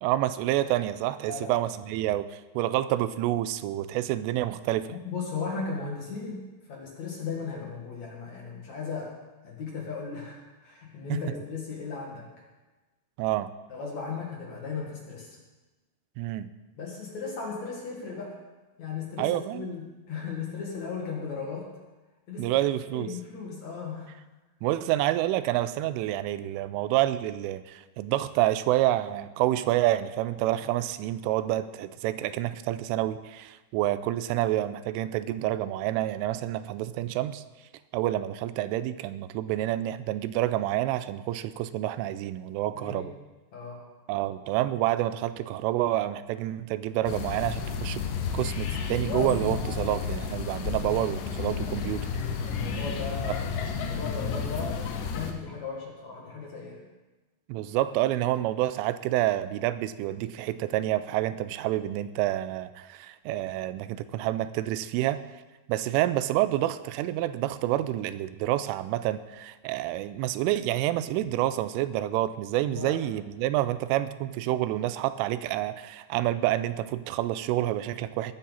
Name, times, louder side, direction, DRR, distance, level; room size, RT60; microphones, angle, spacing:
voice 1, 0.0-5.0 11.1-11.2 13.2-13.5 16.2-16.5 19.2-19.7 22.4-23.1 24.6-37.4 37.9-43.1 44.1-48.0 48.3-52.1 57.5-65.2 65.7-78.3, right 14 dB, 90° right, 13 dB, 3.1 m, -28 dB
voice 2, 4.9-6.4 6.7-9.2 9.4-12.3 13.7-15.4 16.8-18.4 18.8-21.7 22.3-22.6 22.9-24.1 42.7-43.1 43.5-43.9 52.4-53.6 53.8-56.8 72.7-73.0, left 5 dB, 50° left, -2 dB, 2.4 m, -36 dB
sound 1, 47.1-55.3, left 6 dB, 75° left, 3.1 m, -31 dB
19.0 x 10.5 x 4.1 m, 1.2 s
omnidirectional pair, 5.6 m